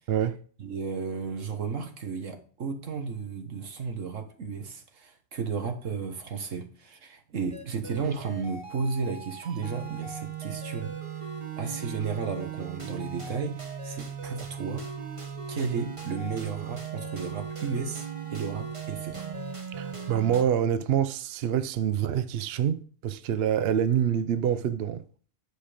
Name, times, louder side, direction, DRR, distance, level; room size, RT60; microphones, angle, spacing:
voice 1, 0.6-10.9 11.6-14.8 15.5-19.3, right 5 dB, 85° right, 1.7 m, -33 dB
sound 1, 7.5-20.4, right 7 dB, 25° right, 1.3 m, -38 dB
voice 2, 19.8-25.0, right 9 dB, 60° right, 0.7 m, -26 dB
10.0 x 5.4 x 5.0 m
omnidirectional pair, 1.3 m